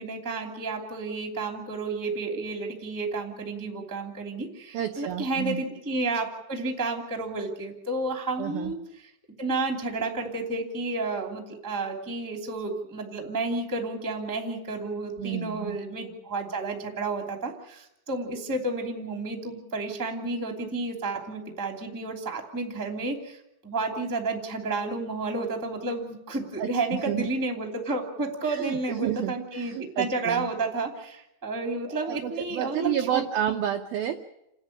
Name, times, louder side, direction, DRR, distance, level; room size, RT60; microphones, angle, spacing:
voice 1, 0.0-8.8 9.4-23.4 23.6-33.2, right 3 dB, 5° right, 2 dB, 1.4 m, -31 dB
voice 2, 4.7-5.6 8.4-8.7 15.2-15.8 26.6-27.3 28.4-30.5 31.9-34.1, right 11 dB, 85° right, 4 dB, 2.1 m, -30 dB
29.5 x 10.5 x 10.0 m, 0.85 s
omnidirectional pair, 5.6 m